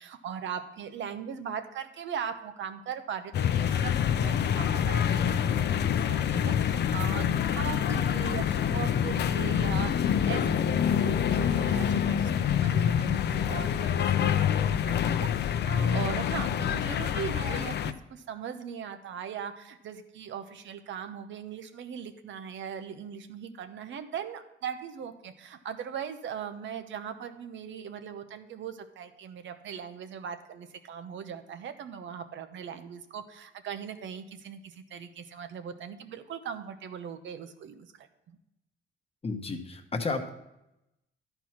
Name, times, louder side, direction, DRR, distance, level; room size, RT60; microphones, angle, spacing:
voice 1, 0.0-17.8 18.1-38.4, right 7 dB, 70° right, 9 dB, 0.9 m, -39 dB
sound 1, 3.3-17.9, left 9 dB, 60° left, 0.5 m, -26 dB
voice 2, 39.2-40.3, left 3 dB, 30° left, 5 dB, 1.1 m, -32 dB
11.5 x 4.6 x 5.8 m, 0.90 s
cardioid pair, 90°, 20 cm